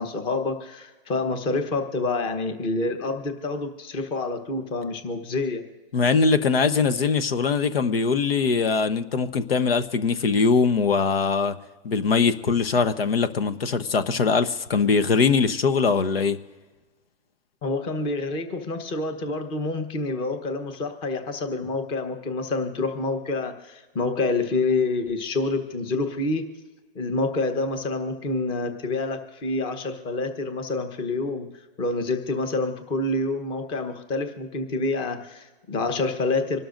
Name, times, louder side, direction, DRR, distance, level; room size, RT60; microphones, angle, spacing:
voice 1, 0.0-5.6 17.6-26.5 26.9-31.5 31.8-36.6, left 3 dB, 15° left, 8 dB, 1.0 m, -27 dB
voice 2, 5.9-11.5 11.8-16.4, left 5 dB, 80° left, 12 dB, 1.1 m, -22 dB
26.0 x 12.5 x 2.6 m, 1.3 s
hypercardioid pair, 155°, 29 cm